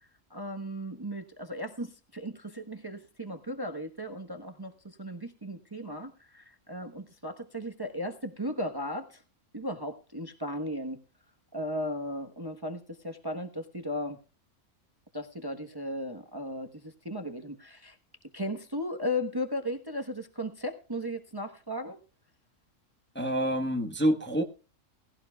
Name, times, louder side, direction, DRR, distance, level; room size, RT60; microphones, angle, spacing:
voice 1, 0.3-9.2 9.5-11.0 11.5-14.2 15.1-18.0 18.3-22.0, equal, 20° right, 6 dB, 1.0 m, -36 dB
voice 2, 23.1-24.4, equal, 10° left, 5 dB, 1.0 m, -27 dB
18.0 x 16.5 x 2.3 m, 0.33 s
omnidirectional pair, 1.5 m